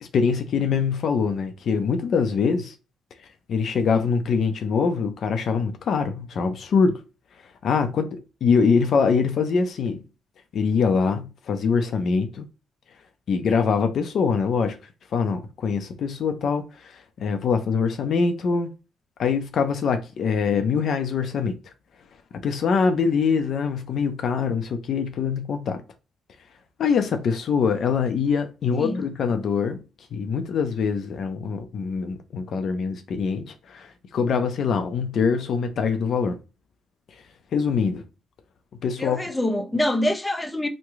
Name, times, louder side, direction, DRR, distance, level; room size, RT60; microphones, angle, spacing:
voice 1, 0.0-2.7 3.5-7.0 7.6-10.0 10.5-12.4 13.3-14.8 15.1-18.7 19.2-21.6 22.4-25.8 26.8-29.8 30.1-36.4 37.5-38.0 38.8-39.2, left 5 dB, 60° left, 0.5 m, -23 dB
voice 2, 28.7-29.0 39.0-40.7, left 1 dB, 10° left, 0.5 m, -25 dB
3.1 x 2.2 x 3.5 m
cardioid pair, 90°, 0 cm